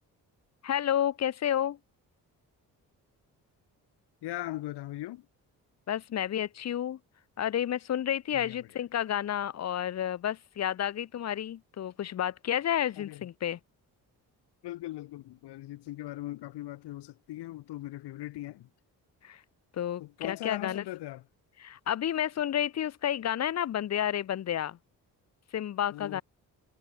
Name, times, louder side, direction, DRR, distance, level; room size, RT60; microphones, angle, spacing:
voice 1, 0.6-1.8 5.9-7.0 7.4-13.6 19.2-19.4 19.7-20.8 21.6-24.8 25.5-26.2, left 10 dB, 40° left, 0.6 m, -30 dB
voice 2, 4.2-5.3 8.3-8.8 13.0-13.3 14.6-18.7 20.0-21.2 25.9-26.2, left 16 dB, 70° left, 1.0 m, -40 dB
hypercardioid pair, 50°, 43 cm